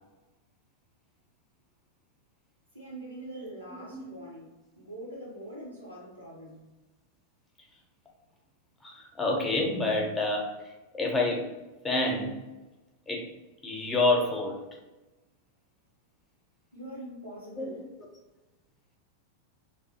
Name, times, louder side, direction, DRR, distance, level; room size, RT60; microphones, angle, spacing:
voice 1, 2.7-6.6 16.7-17.9, right 1 dB, 90° right, -8 dB, 0.7 m, -43 dB
voice 2, 8.8-10.5 10.9-11.5 11.8-12.4 13.1-13.2 13.6-14.6 17.6-17.7, left 2 dB, 10° left, -1 dB, 0.7 m, -27 dB
2.6 x 2.0 x 2.7 m, 1.1 s
figure-of-eight pair, 90°, 0 cm